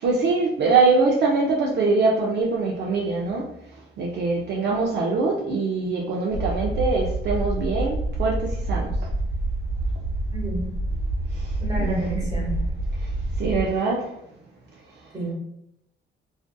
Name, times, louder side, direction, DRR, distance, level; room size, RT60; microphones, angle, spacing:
voice 1, 0.0-3.5 4.0-9.0 11.3-11.5 11.8-12.3 13.0-13.1 13.4-14.1, right 3 dB, 60° right, -2 dB, 0.5 m, -23 dB
sound 1, 6.3-13.7, right 2 dB, 35° left, 0.8 m, -27 dB
voice 2, 10.3-10.7 11.6-12.6 15.1-15.3, right 1 dB, 20° right, -4 dB, 1.1 m, -30 dB
2.5 x 2.4 x 2.2 m, 0.79 s
cardioid pair, 105°, 20 cm